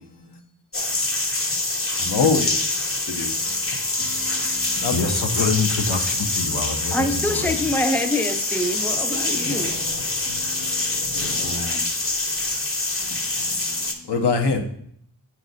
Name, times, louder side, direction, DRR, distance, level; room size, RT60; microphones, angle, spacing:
sound 1, 0.7-13.9, left 2 dB, 30° left, 0.9 m, -25 dB
voice 1, 1.9-2.7 3.1-5.0 6.4-6.7 9.1-11.8 13.0-14.6, left 4 dB, 60° left, 1.0 m, -28 dB
voice 2, 4.9-7.7, left 4 dB, 85° left, 1.0 m, -26 dB
voice 3, 6.9-9.8, left 1 dB, 5° left, 0.5 m, -25 dB
8.3 x 3.0 x 4.0 m
cardioid pair, 40°, 44 cm